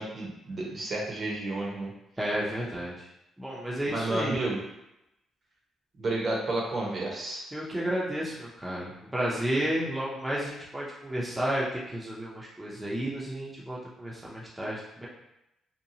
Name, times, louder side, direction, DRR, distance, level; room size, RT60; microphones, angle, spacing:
voice 1, 0.0-1.9 3.9-4.6 6.0-7.5, right 2 dB, 45° right, -2 dB, 0.8 m, -31 dB
voice 2, 2.2-2.9 3.4-4.4 7.5-15.1, right 1 dB, 10° right, -6 dB, 0.6 m, -32 dB
2.7 x 2.2 x 2.7 m, 0.87 s
cardioid pair, 90°, 0 cm